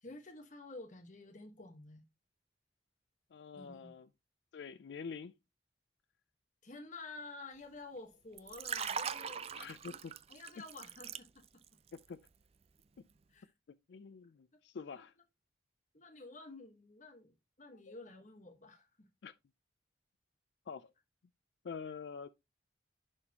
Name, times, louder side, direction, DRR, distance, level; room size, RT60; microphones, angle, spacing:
voice 1, 0.0-2.0 3.6-4.0 6.6-9.4 10.3-11.6 13.3-13.5 14.9-15.0 15.9-19.1, left 2 dB, 45° left, 1.3 m, -51 dB
voice 2, 3.3-4.1 4.5-5.3 9.6-10.1 11.9-12.3 13.0-13.1 13.9-15.1 17.9-18.0 19.2-19.3 20.7-20.9 21.6-22.3, left 5 dB, 70° left, 0.4 m, -46 dB
Liquid, 8.3-11.7 12.0-12.3, right 7 dB, 35° right, 0.4 m, -41 dB
11.0 x 4.2 x 2.8 m
head